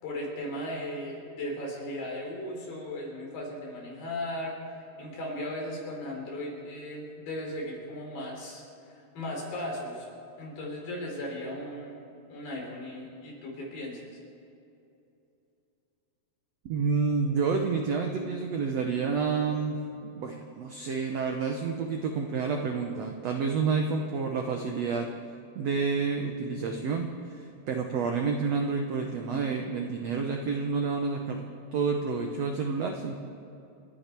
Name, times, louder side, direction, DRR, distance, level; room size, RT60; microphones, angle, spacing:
voice 1, 0.0-10.1 10.4-12.0 12.3-14.2, left 1 dB, 70° left, -1 dB, 5.2 m, -37 dB
voice 2, 16.6-25.1 25.5-33.1, right 5 dB, 75° right, 3 dB, 1.5 m, -29 dB
29.5 x 10.0 x 4.5 m, 2.7 s
omnidirectional pair, 4.3 m